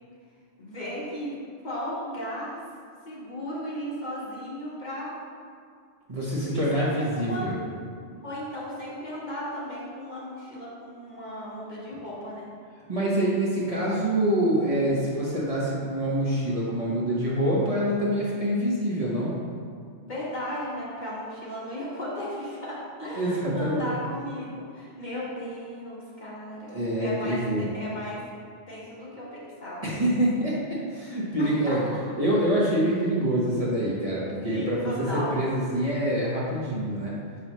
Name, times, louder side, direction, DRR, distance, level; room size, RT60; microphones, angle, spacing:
voice 1, 0.6-2.6 3.0-5.2 6.5-7.5 8.2-12.5 20.1-28.2 28.7-29.9 31.4-32.0 34.5-35.4, equal, 40° left, -8 dB, 1.5 m, -35 dB
voice 2, 6.1-7.6 12.9-19.3 23.2-23.9 26.7-27.7 29.8-31.9 32.2-37.1, right 1 dB, 35° right, -7 dB, 1.1 m, -26 dB
6.3 x 5.5 x 3.0 m, 2.2 s
omnidirectional pair, 1.2 m